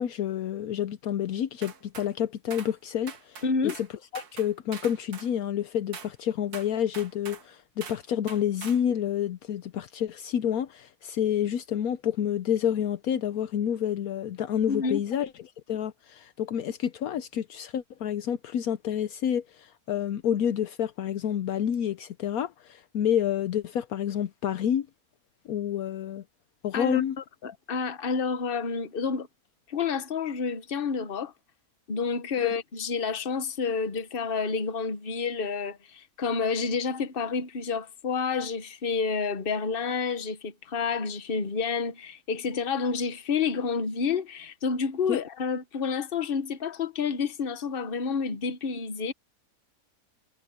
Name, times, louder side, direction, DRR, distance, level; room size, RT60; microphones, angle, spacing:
voice 1, 0.0-3.4 3.8-3.9 4.1-15.3 15.7-24.9 25.5-26.2 26.6-27.2 32.4-32.5 45.1-45.2, left 9 dB, 70° left, 1.2 m, -29 dB
sound 1, 1.6-2.1 2.5-2.7 3.1-3.9 4.1-5.3 5.9-6.1 6.5-7.5 7.8-8.0 8.3-8.8, right 6 dB, 90° right, 2.1 m, -43 dB
voice 2, 3.4-3.7 14.7-15.0 26.7-27.0 27.4-29.3 29.7-31.3 31.9-49.1, left 5 dB, 40° left, 1.2 m, -29 dB
omnidirectional pair, 1.6 m